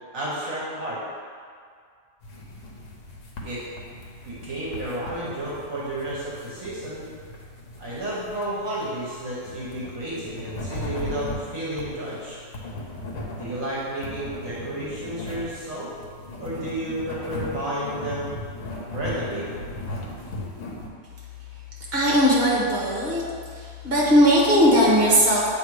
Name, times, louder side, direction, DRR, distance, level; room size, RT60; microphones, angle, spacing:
voice 1, 0.1-1.0 3.4-3.8 4.2-7.1 7.8-12.4 13.4-15.9 16.4-18.4 18.9-19.5, right 1 dB, 65° right, -7 dB, 1.5 m, -31 dB
sound 1, 2.2-20.9, left 1 dB, 60° left, 1.2 m, -37 dB
voice 2, 21.9-23.2 23.5-25.5, equal, 45° right, -6 dB, 1.6 m, -19 dB
8.0 x 3.2 x 4.7 m, 2.1 s
omnidirectional pair, 1.5 m